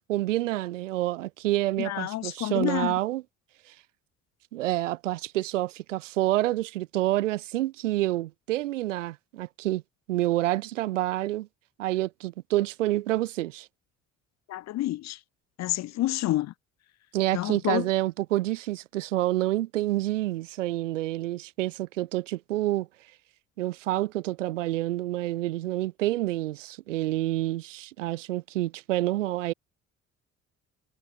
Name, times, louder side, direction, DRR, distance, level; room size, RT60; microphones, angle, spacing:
voice 1, 0.0-3.2 4.5-9.8 10.1-11.5 11.8-13.7 17.1-22.9 23.6-29.5, right 16 dB, 85° right, 1.4 m, -28 dB
voice 2, 1.8-2.9 14.5-15.2 15.6-16.5 17.3-17.9, left 15 dB, 45° left, 0.5 m, -29 dB
hypercardioid pair, 50°, 37 cm